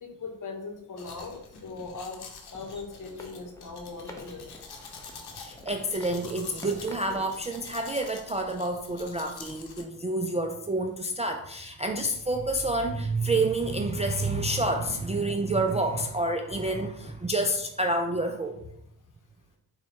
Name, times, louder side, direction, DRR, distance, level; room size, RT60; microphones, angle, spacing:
voice 1, 0.0-2.2 2.5-4.5, left 4 dB, 50° left, 4 dB, 1.0 m, -39 dB
Domestic sounds home sounds, 1.0-9.8, left 4 dB, 65° left, 0.8 m, -46 dB
sound 1, 2.5-8.2, left 1 dB, 10° left, 0.7 m, -49 dB
voice 2, 5.3-18.6, right 2 dB, 20° right, 3 dB, 0.3 m, -28 dB
4.2 x 2.3 x 4.2 m, 0.74 s
cardioid pair, 60°, 42 cm